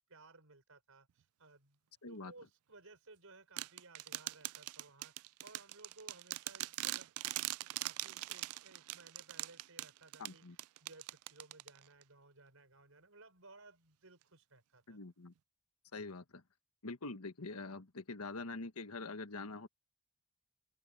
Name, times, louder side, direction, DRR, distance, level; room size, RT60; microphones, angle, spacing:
voice 1, 0.0-1.8 2.1-7.1 7.6-15.0, right 3 dB, 70° right, 5.9 m, -60 dB
voice 2, 2.0-2.3 10.2-10.6 14.9-15.3 15.9-16.4 16.8-19.7, left 3 dB, 85° left, 1.4 m, -45 dB
sound 1, 3.6-12.0, right 17 dB, 85° right, 0.4 m, -42 dB
open air
head